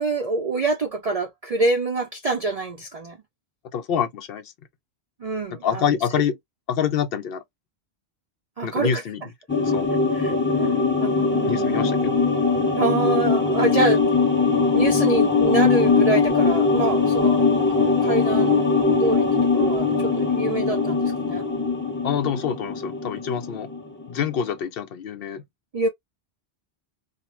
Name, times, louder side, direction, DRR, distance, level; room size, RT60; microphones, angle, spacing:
voice 1, 0.0-3.2 5.2-5.8 6.2-6.3 8.6-9.0 10.1-12.0 12.7-14.0 14.7-17.5 18.0-18.7 18.9-19.3 19.5-21.4 25.7-25.9, right 3 dB, 50° right, 0.4 m, -26 dB
voice 2, 3.7-4.4 5.6-6.3 6.7-7.4 8.6-9.2 9.6-9.9 11.4-12.2 22.0-23.7 24.1-25.4, left 8 dB, 65° left, 0.7 m, -26 dB
sound 1, 9.5-24.0 24.3-24.4, left 4 dB, 15° left, 0.6 m, -21 dB
2.4 x 2.0 x 3.0 m
omnidirectional pair, 1.1 m